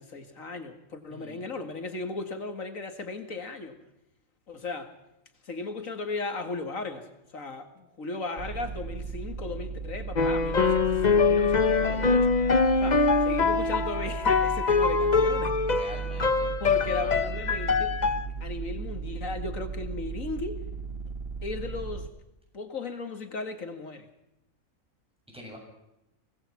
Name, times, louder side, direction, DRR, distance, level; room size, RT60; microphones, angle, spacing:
voice 1, 0.0-3.8 4.5-4.9 5.4-7.1 7.3-12.3 12.8-15.6 16.6-18.0 18.4-20.6 21.4-22.1 22.5-24.1, left 3 dB, 85° left, 2.6 m, -36 dB
voice 2, 1.1-1.5 15.6-17.1 25.3-25.6, equal, 5° right, 7.0 m, -45 dB
sound 1, 8.4-22.1, right 5 dB, 55° right, 1.1 m, -36 dB
sound 2, 10.2-18.3, left 4 dB, 35° left, 1.0 m, -24 dB
24.5 x 19.0 x 6.0 m
omnidirectional pair, 1.4 m